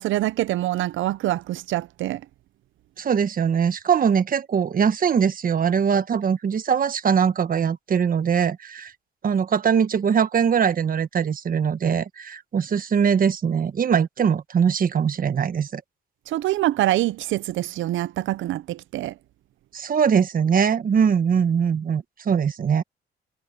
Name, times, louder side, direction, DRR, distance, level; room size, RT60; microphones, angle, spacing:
voice 1, 0.0-2.2 16.3-19.1, right 15 dB, 75° right, 0.6 m, -25 dB
voice 2, 3.0-8.9 9.2-15.8 19.7-22.8, right 7 dB, 45° right, 1.2 m, -21 dB
cardioid pair, 90°, 20 cm